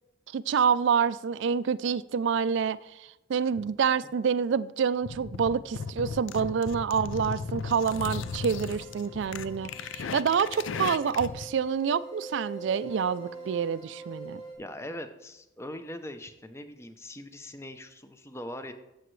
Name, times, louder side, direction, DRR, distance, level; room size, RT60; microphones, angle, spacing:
voice 1, 0.3-14.4, right 6 dB, 65° right, 0.3 m, -27 dB
sound 1, 5.0-11.4, left 5 dB, 75° left, 0.4 m, -36 dB
sound 2, 7.6-14.6, right 3 dB, 50° left, 3.4 m, -44 dB
voice 2, 14.6-18.7, left 1 dB, 15° left, 0.5 m, -41 dB
14.0 x 7.7 x 3.1 m
head